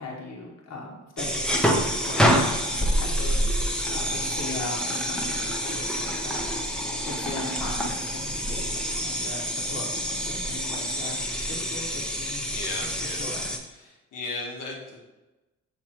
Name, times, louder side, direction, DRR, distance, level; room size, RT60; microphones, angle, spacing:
voice 1, 0.0-3.4 3.9-6.4 7.1-11.2 11.6-12.4 13.0-13.5, left 2 dB, 60° left, -2 dB, 1.4 m, -39 dB
sound 1, 1.2-13.6, equal, 5° left, 0.8 m, -27 dB
voice 2, 12.5-13.2 13.7-15.1, left 3 dB, 90° left, -1 dB, 1.4 m, -36 dB
6.4 x 3.5 x 4.4 m, 1.1 s
cardioid pair, 90°, 30 cm